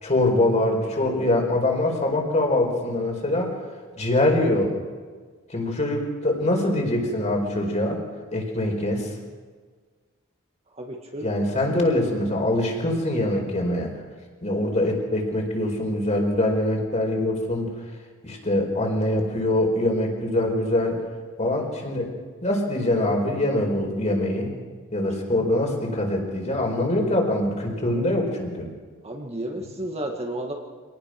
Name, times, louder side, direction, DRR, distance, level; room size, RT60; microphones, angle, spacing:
voice 1, 0.0-3.6 4.0-4.7 5.5-8.0 8.3-9.1 11.2-13.9 14.4-17.7 18.2-21.0 21.4-22.1 22.4-24.5 24.9-28.7, left 1 dB, 30° left, 1 dB, 4.7 m, -23 dB
voice 2, 10.8-11.3 25.0-25.1 29.0-30.5, right 1 dB, 30° right, 1 dB, 2.0 m, -32 dB
26.0 x 19.0 x 6.1 m, 1.5 s
head